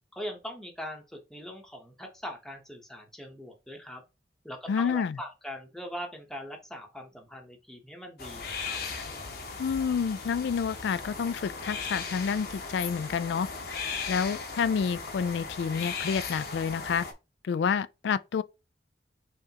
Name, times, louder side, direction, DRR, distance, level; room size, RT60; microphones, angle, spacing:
voice 1, 0.1-4.0 4.4-8.8, equal, 5° left, 0.9 m, -41 dB
voice 2, 4.7-5.2 9.6-13.5 14.1-17.1 17.4-18.4, left 6 dB, 70° left, 0.3 m, -29 dB
sound 1, 8.2-17.1, left 5 dB, 55° left, 0.9 m, -37 dB
5.5 x 3.3 x 2.9 m
head